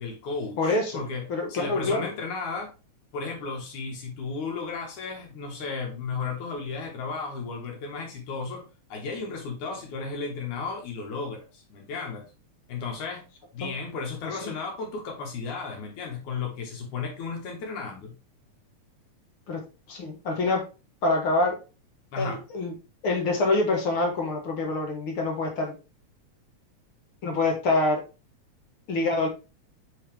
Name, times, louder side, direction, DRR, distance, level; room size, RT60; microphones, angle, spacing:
voice 1, 0.0-1.2 1.5-2.7 3.1-12.3 12.7-13.2 13.5-18.1 22.1-22.4, left 4 dB, 85° left, 1 dB, 3.1 m, -34 dB
voice 2, 0.6-2.1 13.6-13.7 14.4-14.5 19.5-20.7 21.0-21.6 22.2-22.7 23.0-25.8 27.2-28.0 28.9-29.3, left 2 dB, 50° left, 2 dB, 2.1 m, -26 dB
7.1 x 5.6 x 3.4 m, 0.30 s
omnidirectional pair, 3.4 m